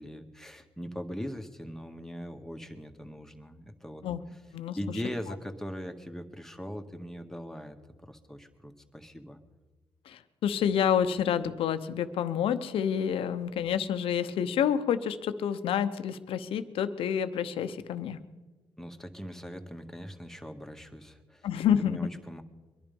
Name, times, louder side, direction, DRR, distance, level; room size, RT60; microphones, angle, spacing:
voice 1, 0.0-4.0 4.8-7.8 8.0-9.4 18.8-21.5 21.8-22.4, equal, 5° left, 4 dB, 1.8 m, -40 dB
voice 2, 10.1-18.2 21.4-22.0, left 8 dB, 85° left, 11 dB, 0.9 m, -28 dB
23.0 x 11.0 x 5.4 m, 1.2 s
cardioid pair, 60°, 9 cm